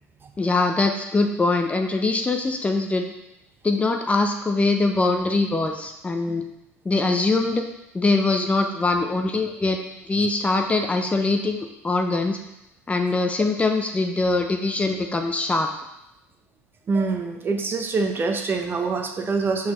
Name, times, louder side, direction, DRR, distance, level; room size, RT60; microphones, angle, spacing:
voice 1, 0.4-3.1 3.6-6.4 6.9-7.6 7.9-9.8 10.1-12.4 12.9-15.7, left 3 dB, 15° left, 4 dB, 0.7 m, -22 dB
voice 2, 16.9-19.7, right 4 dB, 30° right, 4 dB, 0.8 m, -25 dB
6.2 x 5.9 x 3.1 m, 0.87 s
figure-of-eight pair, 65°, 8 cm